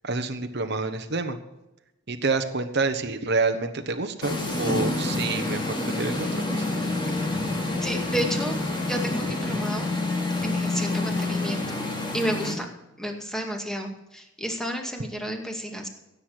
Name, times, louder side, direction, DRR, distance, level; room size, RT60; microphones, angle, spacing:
voice 1, 0.0-1.4 2.1-6.6, right 3 dB, 60° right, 7 dB, 1.1 m, -28 dB
sound 1, 4.2-12.5, left 2 dB, 25° left, 2.6 m, -28 dB
voice 2, 7.8-8.6 8.8-9.9 10.4-11.8 12.1-12.7 13.0-15.9, equal, 5° left, 3 dB, 2.2 m, -31 dB
16.5 x 8.3 x 6.5 m, 0.95 s
head